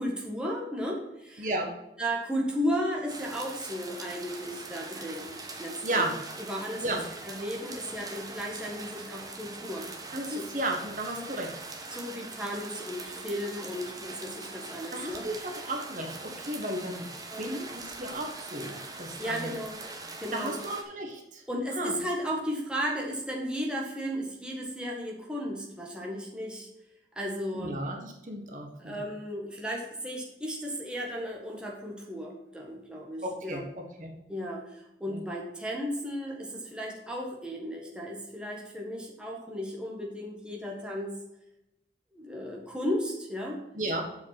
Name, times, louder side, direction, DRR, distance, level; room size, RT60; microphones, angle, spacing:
voice 1, 0.0-1.5 2.0-5.3 5.6-6.1 6.5-7.0 7.2-10.4 11.2-11.3 11.9-15.5 17.3-17.6 19.2-19.8 20.2-20.5 21.5-26.7 27.1-27.7 28.8-33.6 34.3-41.1 42.1-43.6, equal, 5° right, -2 dB, 1.7 m, -35 dB
voice 2, 1.4-1.7 5.8-6.1 6.8-7.0 10.1-11.5 14.9-17.1 17.4-19.5 20.3-21.4 21.7-21.9 27.5-29.1 33.2-34.1 35.1-35.2 43.7-44.0, right 1 dB, 45° right, 2 dB, 1.5 m, -34 dB
sound 1, 3.1-20.8, right 3 dB, 20° right, 1.2 m, -42 dB
7.5 x 5.8 x 5.9 m, 0.91 s
head